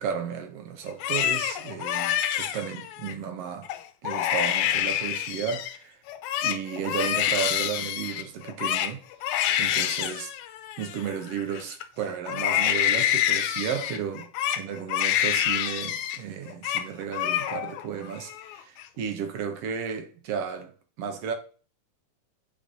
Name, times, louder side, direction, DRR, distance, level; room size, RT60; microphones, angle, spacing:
voice 1, 0.0-3.7 4.0-6.0 6.4-9.0 9.6-10.3 10.8-14.3 14.5-20.7 21.0-21.3, right 7 dB, 70° right, 1.6 m, -33 dB
Crying sobbing, 0.9-3.1 3.6-3.8 4.0-5.8 6.1-11.8 12.3-16.2 16.5-16.9 17.1-17.8 18.2-18.8, left 11 dB, 80° left, 1.9 m, -27 dB
8.5 x 5.3 x 2.7 m
omnidirectional pair, 3.6 m